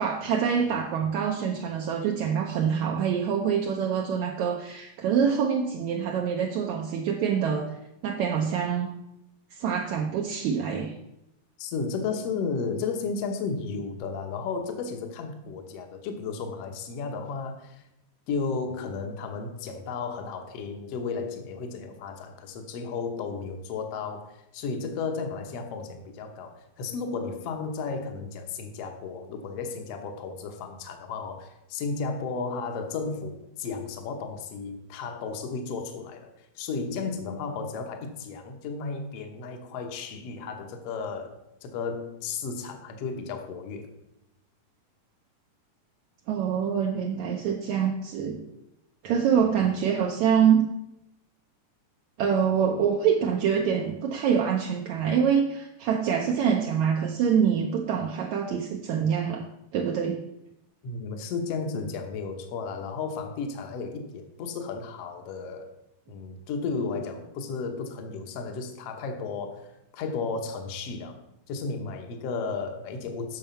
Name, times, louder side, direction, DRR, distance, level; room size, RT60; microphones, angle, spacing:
voice 1, 0.0-7.7 8.0-8.9 9.6-10.9 46.3-48.4 49.0-50.7 52.2-59.5 59.7-60.2, right 7 dB, 75° right, 2 dB, 1.8 m, -25 dB
voice 2, 11.6-17.8 18.3-41.3 41.6-43.9 60.8-65.7 66.1-71.2 71.5-73.4, left 4 dB, 60° left, 5 dB, 1.8 m, -33 dB
9.1 x 6.5 x 5.6 m, 0.85 s
omnidirectional pair, 3.9 m